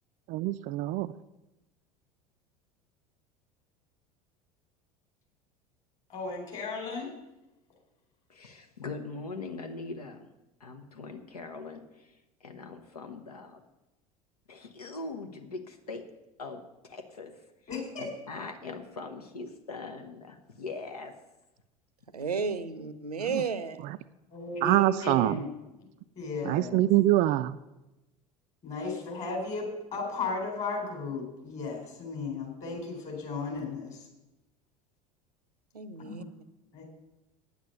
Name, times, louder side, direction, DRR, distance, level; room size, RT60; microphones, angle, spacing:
voice 1, 0.3-1.1 23.3-23.4 24.6-25.4 26.4-27.6, right 15 dB, 40° right, 13 dB, 0.4 m, -24 dB
voice 2, 6.1-7.1 17.7-18.1 24.3-25.5 26.1-26.9 28.6-34.1 36.0-36.3 36.7-36.8, left 4 dB, 35° left, 1 dB, 4.1 m, -35 dB
voice 3, 8.3-10.3 10.6-13.6 14.5-16.1 16.4-17.4 18.0-21.2, left 3 dB, 75° left, 6 dB, 0.9 m, -41 dB
voice 4, 22.1-23.8 35.7-36.2, right 5 dB, 80° right, 13 dB, 0.7 m, -33 dB
9.4 x 8.4 x 6.6 m, 0.98 s
figure-of-eight pair, 75°, 20 cm